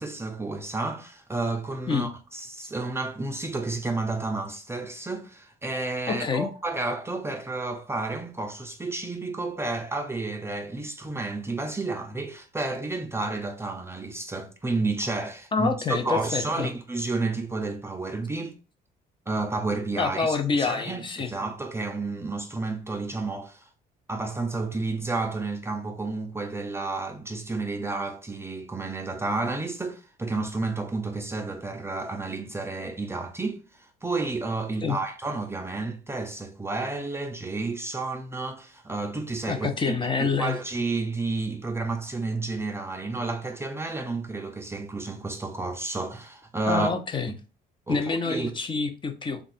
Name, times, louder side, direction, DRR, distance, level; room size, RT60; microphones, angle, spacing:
voice 1, 0.0-18.6 19.3-23.7 24.1-46.9 47.3-47.4 47.9-48.6, right 3 dB, 15° right, 0.5 m, -31 dB
voice 2, 6.1-6.5 15.5-16.7 20.0-21.3 34.8-35.0 39.5-40.6 46.7-47.3 47.9-49.4, left 5 dB, 30° left, 0.6 m, -27 dB
3.5 x 2.4 x 4.1 m
cardioid pair, 110°, 17 cm